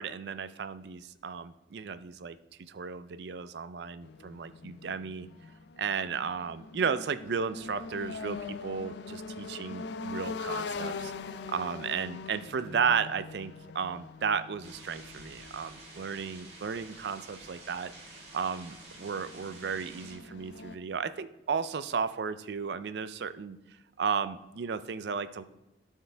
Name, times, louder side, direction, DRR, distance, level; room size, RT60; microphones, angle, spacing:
voice 1, 0.0-2.4 2.7-5.3 5.8-11.1 11.5-17.9 18.3-23.6 24.0-25.4, right 6 dB, 70° right, 13 dB, 0.4 m, -34 dB
sound 1, 4.0-20.8, left 4 dB, 75° left, 0.4 m, -43 dB
sound 2, 14.6-20.2, right 2 dB, 35° right, 1.8 m, -50 dB
12.5 x 4.6 x 3.4 m, 0.95 s
head